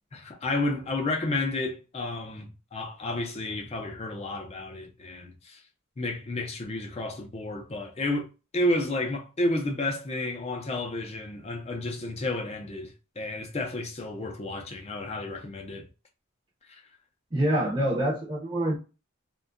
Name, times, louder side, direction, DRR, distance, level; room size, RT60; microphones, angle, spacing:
voice 1, 0.1-5.6 6.0-8.3 8.5-15.8 16.7-16.8, left 2 dB, 30° left, 0.5 m, -31 dB
voice 2, 17.3-18.8, right 1 dB, 20° right, 0.6 m, -26 dB
2.6 x 2.2 x 2.4 m
head